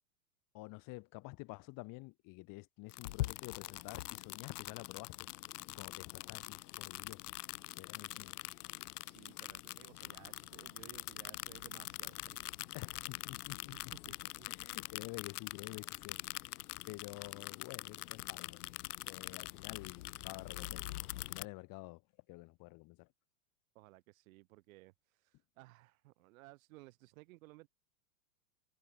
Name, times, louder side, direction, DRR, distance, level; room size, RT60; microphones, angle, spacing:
voice 1, 0.5-5.3 5.7-7.3 7.7-8.4 12.7-13.9 14.5-16.5 16.8-18.7 19.0-22.0 22.3-23.1, left 24 dB, 45° left, 6.9 m, -49 dB
sound 1, 2.9-21.5, left 16 dB, 75° left, 0.9 m, -44 dB
voice 2, 8.0-8.4 8.7-12.7 13.7-14.2 16.6-16.7 23.7-27.7, right 21 dB, 60° right, 4.8 m, -59 dB
hypercardioid pair, 130°, 47 cm